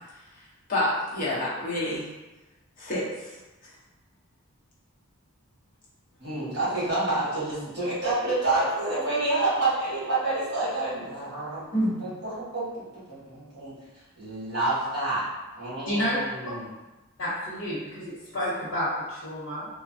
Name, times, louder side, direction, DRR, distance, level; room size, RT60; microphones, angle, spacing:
voice 1, 0.7-2.0 2.8-3.3 11.7-12.1, left 1 dB, 35° left, -8 dB, 0.8 m, -27 dB
voice 2, 6.2-13.7 14.2-15.3 15.5-16.7, right 2 dB, 50° right, -9 dB, 1.3 m, -28 dB
voice 3, 15.9-16.2 17.2-19.7, equal, 80° left, -11 dB, 0.9 m, -30 dB
3.2 x 2.1 x 2.6 m, 1.1 s
head